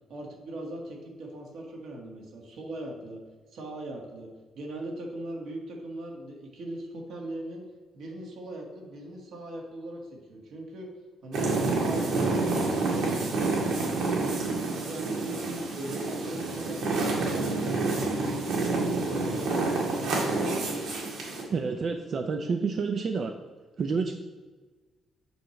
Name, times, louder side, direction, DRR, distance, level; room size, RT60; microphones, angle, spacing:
voice 1, 0.1-3.2 3.5-4.3 4.5-7.6 7.9-10.9 11.2-14.5 14.8-20.0, right 1 dB, 65° right, 0 dB, 1.6 m, -40 dB
sound 1, 11.3-21.4, right 3 dB, 80° right, 1.7 m, -28 dB
voice 2, 21.5-23.3 23.8-24.2, right 5 dB, 40° right, 5 dB, 0.4 m, -29 dB
7.8 x 3.2 x 5.7 m, 1.3 s
cardioid pair, 165°, 0 cm